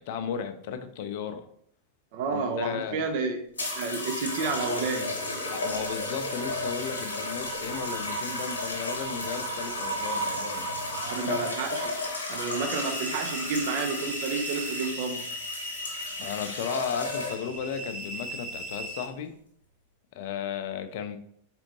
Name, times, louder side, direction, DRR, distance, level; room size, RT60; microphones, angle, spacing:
voice 1, 0.0-1.5 2.3-3.1 5.4-10.7 11.2-11.5 16.2-19.3 20.2-21.2, left 7 dB, 50° left, 8 dB, 0.5 m, -35 dB
voice 2, 2.1-3.4 3.8-5.2 11.0-11.9 12.3-15.3, right 4 dB, 50° right, 5 dB, 0.6 m, -30 dB
sound 1, 3.6-17.6 18.5-18.8, left 1 dB, 75° left, 1.2 m, -33 dB
sound 2, 12.5-19.1, equal, 75° right, 1.6 m, -38 dB
4.1 x 3.7 x 3.0 m, 0.65 s
figure-of-eight pair, 90°, 0 cm